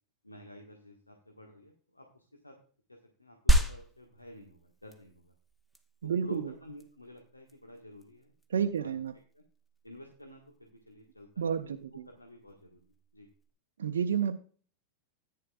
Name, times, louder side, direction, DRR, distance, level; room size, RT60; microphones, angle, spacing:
voice 1, 0.2-2.5 2.9-5.3 6.0-8.9 9.3-9.4 9.8-11.8 12.1-13.3, left 1 dB, 85° left, 1 dB, 1.6 m, -51 dB
sound 1, 3.5-13.5, right 1 dB, 5° left, 1.1 m, -34 dB
voice 2, 6.0-6.5 8.5-9.1 11.4-12.0 13.8-14.4, right 7 dB, 65° right, 4 dB, 0.7 m, -30 dB
14.0 x 9.5 x 2.4 m, 0.42 s
figure-of-eight pair, 90°, 0 cm